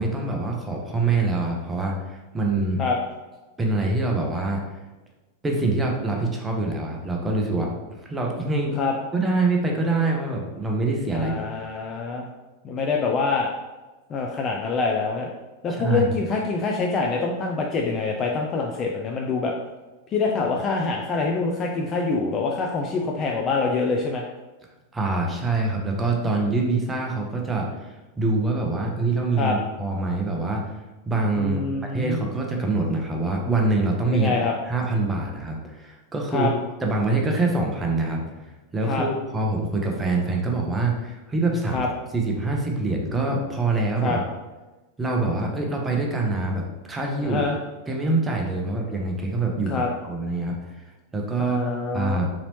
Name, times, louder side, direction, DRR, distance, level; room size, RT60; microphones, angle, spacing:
voice 1, 0.0-2.8 3.6-4.6 5.4-7.7 8.0-8.8 9.1-11.5 15.7-16.1 24.9-30.7 31.0-34.3 34.6-36.5 36.8-38.3 38.7-41.8 42.1-44.2 45.0-47.4 47.9-50.6 51.1-51.6 51.9-52.3, right 3 dB, 15° right, 0 dB, 0.7 m, -25 dB
voice 2, 11.1-12.3 12.6-13.5 14.1-15.3 15.6-19.5 20.1-24.2 29.4-29.6 31.4-32.3 34.1-34.5 36.3-36.5 38.9-39.1 41.7-41.9 44.0-44.2 47.2-47.6 49.7-49.9 51.4-52.3, left 4 dB, 30° left, 0 dB, 0.4 m, -25 dB
3.9 x 2.9 x 3.0 m, 1.2 s
figure-of-eight pair, 90°, 0 cm